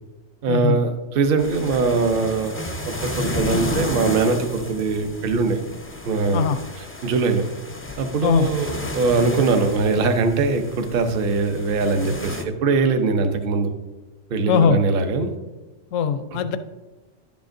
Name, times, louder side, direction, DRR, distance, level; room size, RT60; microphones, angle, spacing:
voice 1, 0.4-2.6 2.9-5.6 6.0-6.5 6.8-7.5 8.0-13.7 14.3-15.3 16.3-16.4, right 4 dB, 55° right, 7 dB, 0.8 m, -21 dB
sound 1, 1.4-12.4, left 1 dB, 20° left, 0.3 m, -32 dB
voice 2, 14.5-14.8 15.9-16.6, left 6 dB, 80° left, 11 dB, 0.9 m, -20 dB
11.0 x 7.1 x 2.6 m, 1.1 s
omnidirectional pair, 1.3 m